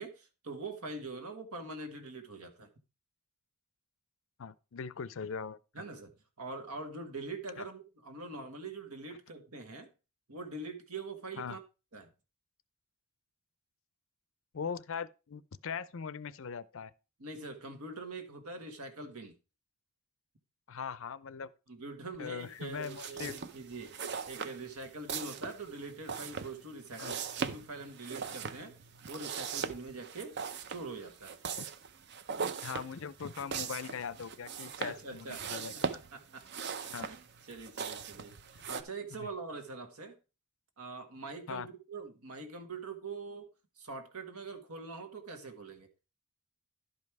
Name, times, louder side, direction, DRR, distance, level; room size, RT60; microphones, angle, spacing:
voice 1, 0.0-2.7 5.7-6.1 6.4-9.9 10.3-11.6 11.9-12.1 17.2-19.3 21.7-28.7 29.1-30.3 30.7-31.3 34.6-35.8 36.1-36.4 36.8-37.2 37.5-38.3 38.7-40.1 40.8-43.5 43.8-45.9, right 3 dB, 80° right, 1.6 m, -43 dB
voice 2, 4.4-5.6 7.6-7.7 11.4-11.6 14.5-16.9 20.7-21.5 22.2-23.4 27.0-27.1 31.6-31.7 32.6-35.9 36.9-37.1 39.2-39.3 41.5-41.7, left 6 dB, 60° left, 0.5 m, -40 dB
sound 1, 22.7-38.8, right 6 dB, 50° right, 0.6 m, -40 dB
11.5 x 5.4 x 4.6 m
head